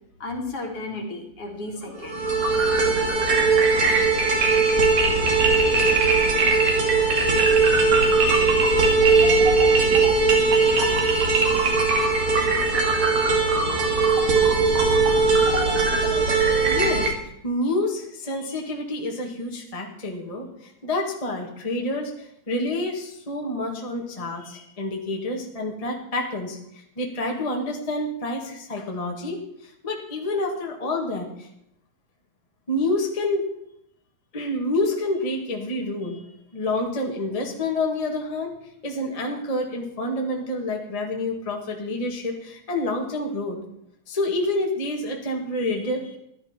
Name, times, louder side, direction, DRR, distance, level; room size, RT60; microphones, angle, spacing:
voice 1, 0.2-2.3, left 2 dB, 55° left, 1 dB, 2.9 m, -33 dB
sound 1, 2.0-17.1, right 3 dB, 65° right, 3.5 m, -19 dB
voice 2, 16.7-17.1 17.4-26.6 27.0-31.5 32.7-33.4 34.3-36.2 36.5-38.5 38.8-43.6 44.1-46.2, left 2 dB, 15° left, 0 dB, 1.5 m, -28 dB
15.0 x 12.0 x 4.5 m, 0.74 s
omnidirectional pair, 3.3 m